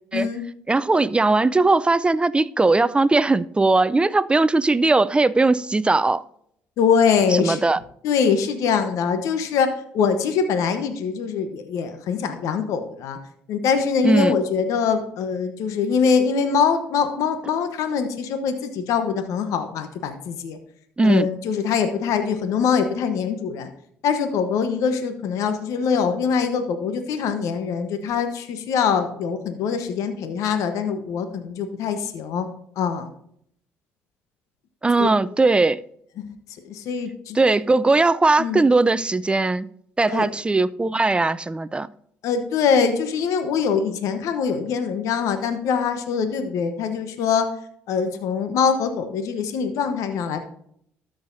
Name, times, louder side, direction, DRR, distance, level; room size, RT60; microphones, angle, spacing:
voice 1, 0.7-6.2 7.3-7.8 14.0-14.4 21.0-21.3 34.8-35.8 37.3-39.7 40.0-41.9, right 3 dB, 20° right, 0.4 m, -19 dB
voice 2, 6.8-7.6 8.0-13.2 13.5-20.6 21.0-23.7 24.0-32.5 32.8-33.1 35.0-35.1 36.2-36.3 36.6-37.4 38.4-38.6 40.1-40.3 42.2-47.5 47.9-50.4, left 6 dB, 75° left, 1.0 m, -23 dB
13.0 x 6.5 x 2.6 m
supercardioid pair, 65°, 6 cm